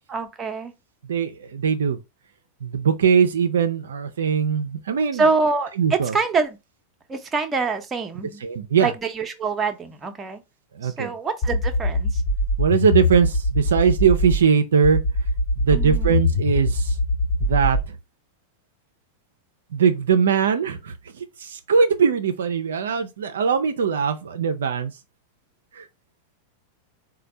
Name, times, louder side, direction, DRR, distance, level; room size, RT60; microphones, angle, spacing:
voice 1, 0.1-0.7 5.1-6.6 7.1-8.4 8.8-10.4 10.8-12.2 15.7-16.2, right 4 dB, 20° right, 0.6 m, -25 dB
voice 2, 1.1-2.0 2.6-5.3 5.8-6.1 8.4-8.9 10.8-11.1 12.6-15.0 15.6-16.9 17.4-17.8 19.7-20.9 21.4-24.9 25.8-25.9, right 6 dB, 65° right, 0.4 m, -21 dB
sound 1, 11.4-14.4 14.8-17.9, left 1 dB, 45° left, 1.1 m, -22 dB
4.2 x 2.2 x 4.1 m
figure-of-eight pair, 90°, 0 cm